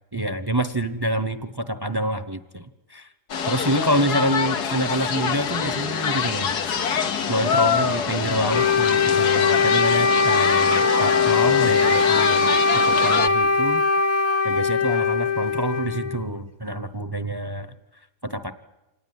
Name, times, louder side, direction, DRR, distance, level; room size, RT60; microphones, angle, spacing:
voice 1, 0.1-3.1 3.5-6.6 7.3-13.8 14.4-17.7 18.2-18.5, right 1 dB, 20° right, 11 dB, 0.8 m, -27 dB
sound 1, 3.3-13.3, left 7 dB, 85° left, 1.8 m, -25 dB
Wind instrument woodwind instrument, 8.5-16.2, left 4 dB, 45° left, 1.4 m, -20 dB
26.5 x 19.0 x 9.5 m, 1.0 s
omnidirectional pair, 1.7 m